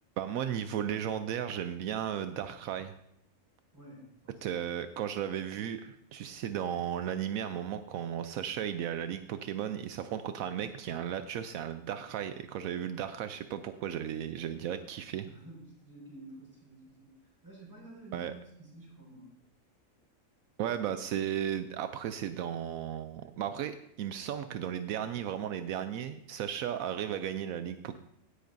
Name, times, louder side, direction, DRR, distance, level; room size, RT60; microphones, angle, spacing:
voice 1, 0.2-2.9 4.4-15.3 18.1-18.3 20.6-28.0, right 9 dB, 80° right, 10 dB, 1.0 m, -35 dB
voice 2, 3.7-4.7 15.2-18.3 18.6-19.3, right 2 dB, 15° right, -3 dB, 5.1 m, -51 dB
16.5 x 10.0 x 2.6 m, 0.78 s
omnidirectional pair, 1.4 m